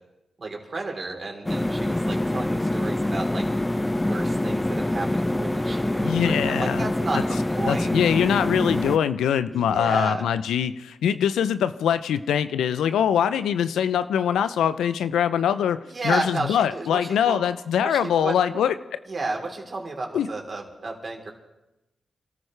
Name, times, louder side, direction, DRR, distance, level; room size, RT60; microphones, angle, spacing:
voice 1, 0.4-3.5 4.0-7.2 7.6-7.9 9.5-10.2 15.9-17.4 17.8-18.6 19.1-21.3, right 3 dB, 50° right, 1 dB, 3.6 m, -32 dB
sound 1, 1.5-9.0, left 1 dB, 15° left, 0.6 m, -25 dB
voice 2, 6.0-6.9 7.1-7.2 7.6-18.7 20.1-20.3, left 9 dB, 90° left, 13 dB, 0.5 m, -23 dB
27.0 x 14.0 x 3.3 m, 0.99 s
supercardioid pair, 50°, 0 cm